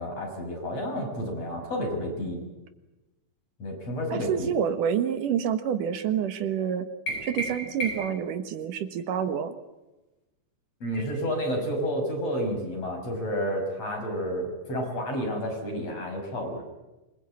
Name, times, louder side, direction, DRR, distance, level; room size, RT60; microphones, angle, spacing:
voice 1, 0.0-2.4 3.6-4.5 10.8-16.6, equal, 50° left, 2 dB, 7.0 m, -30 dB
voice 2, 4.1-6.9 7.2-9.5, right 8 dB, 75° right, 10 dB, 2.9 m, -28 dB
sound 1, 7.1-8.3, right 1 dB, 70° left, 8.3 m, -33 dB
27.0 x 21.0 x 8.8 m, 1.1 s
omnidirectional pair, 3.7 m